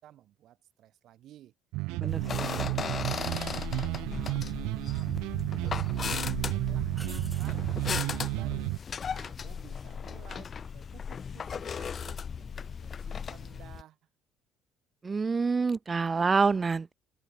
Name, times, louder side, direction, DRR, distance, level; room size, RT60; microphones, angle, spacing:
voice 1, 0.0-1.5 2.0-6.1 6.5-8.7 9.1-14.0, right 13 dB, 65° right, 3.3 m, -54 dB
sound 1, 1.7-8.8, right 22 dB, 85° right, 0.6 m, -32 dB
sound 2, 2.1-13.8, left 6 dB, 40° left, 0.7 m, -37 dB
sound 3, 4.9-5.5 5.9-6.0 6.9-7.6 10.7-11.1, equal, ahead, 6.8 m, -50 dB
voice 2, 15.0-16.9, right 4 dB, 25° right, 0.3 m, -26 dB
cardioid pair, 100°, 0 cm